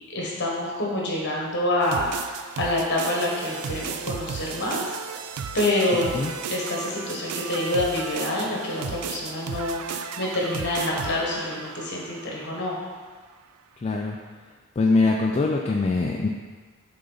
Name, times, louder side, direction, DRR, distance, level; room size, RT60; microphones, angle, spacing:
voice 1, 0.1-5.0 5.5-6.2 6.5-12.8, left 1 dB, 50° left, -3 dB, 1.3 m, -27 dB
sound 1, 1.8-12.9, right 6 dB, 80° right, 0.4 m, -35 dB
voice 2, 13.8-14.2 14.8-16.3, left 3 dB, 30° left, 0 dB, 0.3 m, -22 dB
6.5 x 3.9 x 3.9 m, 1.5 s
head